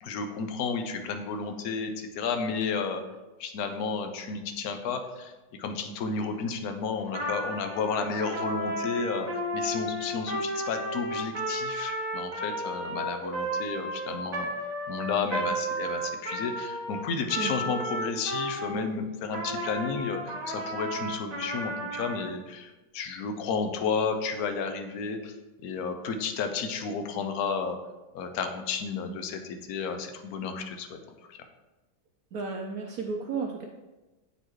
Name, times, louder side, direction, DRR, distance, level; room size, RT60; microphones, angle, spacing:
voice 1, 0.0-3.0 3.4-5.3 5.6-14.5 14.9-25.3 25.6-27.8 28.1-31.0 31.3-31.4, left 5 dB, 65° left, 6 dB, 1.0 m, -32 dB
Trumpet, 7.1-18.8 19.3-22.3, right 1 dB, 30° right, 0.7 m, -33 dB
voice 2, 17.4-17.7 32.3-33.6, right 4 dB, 80° right, 1 dB, 0.8 m, -33 dB
9.0 x 4.1 x 3.1 m, 1.1 s
omnidirectional pair, 2.1 m